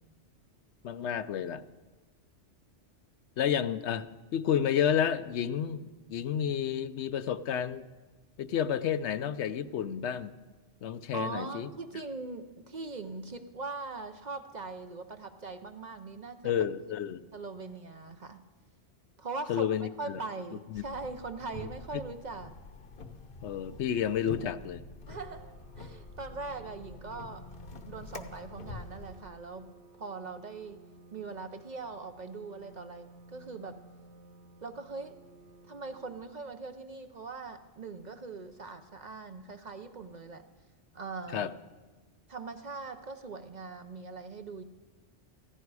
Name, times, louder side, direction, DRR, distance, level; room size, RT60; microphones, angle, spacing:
voice 1, 0.8-1.6 3.4-4.1 4.3-7.8 8.4-10.3 10.8-11.7 16.4-17.2 19.5-20.2 20.7-20.8 21.9-22.0 23.4-24.8 41.3-41.5, left 9 dB, 75° left, 13 dB, 0.9 m, -30 dB
voice 2, 11.1-16.5 17.3-18.4 19.2-19.7 20.0-22.5 25.1-27.5 27.9-29.7 30.0-30.8 31.1-33.8 34.6-35.2 35.6-40.4 40.9-41.5 42.3-44.6, right 3 dB, 45° right, 8 dB, 0.7 m, -41 dB
sound 1, 20.7-29.2, left 3 dB, 50° left, 1.1 m, -46 dB
sound 2, 25.2-36.1, right 1 dB, 65° right, 2.1 m, -55 dB
15.5 x 15.0 x 4.8 m, 1.3 s
omnidirectional pair, 1.2 m